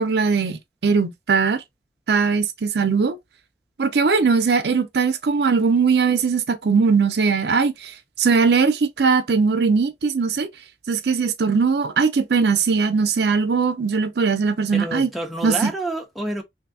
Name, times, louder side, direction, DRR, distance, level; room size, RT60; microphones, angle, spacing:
voice 1, 0.0-1.6 2.1-3.2 3.8-7.9 8.2-10.5 10.9-15.1 15.4-15.5, right 5 dB, 65° right, 0.5 m, -20 dB
voice 2, 14.7-16.4, right 1 dB, ahead, 0.6 m, -28 dB
3.4 x 2.6 x 2.6 m
head